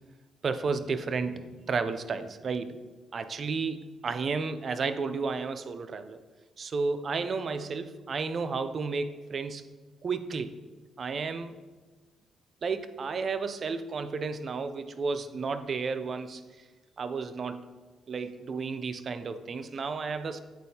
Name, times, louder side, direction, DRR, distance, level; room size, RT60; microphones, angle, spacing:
voice 1, 0.4-2.8 3.1-6.2 6.6-9.6 10.0-10.6 11.0-11.5 12.6-16.4 17.0-17.6 18.1-20.4, right 4 dB, 45° right, 10 dB, 0.4 m, -32 dB
8.0 x 4.2 x 2.8 m, 1.3 s
cardioid pair, 90°, 0 cm